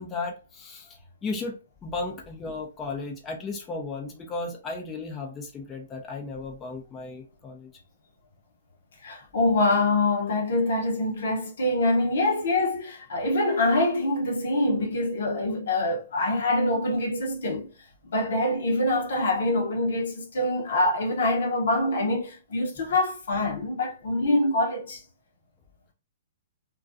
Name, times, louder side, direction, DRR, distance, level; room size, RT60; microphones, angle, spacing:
voice 1, 0.0-7.7, left 3 dB, 20° left, 0.5 m, -35 dB
voice 2, 9.0-17.7 18.0-25.0, left 2 dB, 70° left, 0.7 m, -25 dB
2.3 x 2.3 x 2.5 m
hypercardioid pair, 125°, 0 cm